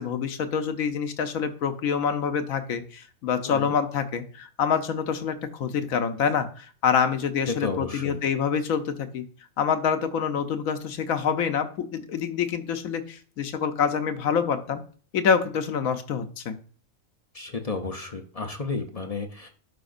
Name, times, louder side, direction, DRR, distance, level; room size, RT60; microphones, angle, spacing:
voice 1, 0.0-9.2 9.6-14.8 15.1-16.6, left 7 dB, 85° left, 9 dB, 1.2 m, -26 dB
voice 2, 7.5-8.2 17.3-19.5, left 4 dB, 35° left, 4 dB, 0.6 m, -32 dB
11.5 x 5.0 x 2.5 m, 0.42 s
omnidirectional pair, 1.4 m